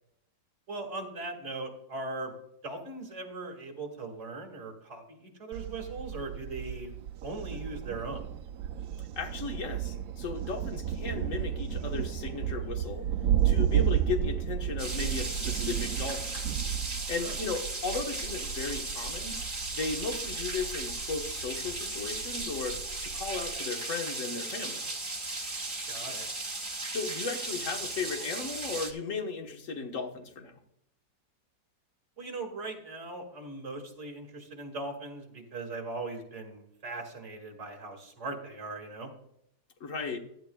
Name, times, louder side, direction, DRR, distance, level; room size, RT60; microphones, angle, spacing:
voice 1, 0.7-2.3 2.6-6.9 7.2-8.2 17.2-17.3 25.9-26.3 32.2-39.1, right 2 dB, 40° right, 2 dB, 2.4 m, -39 dB
Thunder, 5.5-23.6, right 10 dB, 70° right, 0.8 m, -33 dB
voice 2, 9.1-13.1 13.4-16.3 17.1-19.4 19.7-24.8 26.9-30.5 39.8-40.2, left 4 dB, 50° left, 4 dB, 1.6 m, -36 dB
sound 1, 14.8-28.9, right 2 dB, 20° right, 1.2 m, -36 dB
15.0 x 11.0 x 2.3 m, 0.74 s
omnidirectional pair, 1.9 m